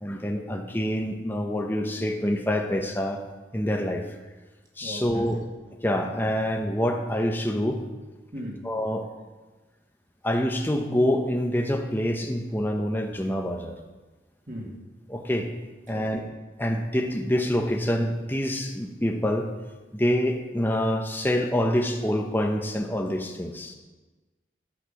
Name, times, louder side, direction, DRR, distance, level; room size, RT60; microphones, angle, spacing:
voice 1, 0.0-3.2 3.5-4.1 4.8-5.4 5.8-7.8 8.6-9.1 10.2-13.8 15.1-15.5 15.9-16.2 16.6-19.5 19.9-23.7, equal, 10° left, 3 dB, 0.9 m, -26 dB
voice 2, 4.8-5.3 8.3-8.6 14.5-14.8 15.9-16.3, equal, 45° right, -1 dB, 2.2 m, -38 dB
11.0 x 8.3 x 5.5 m, 1.2 s
head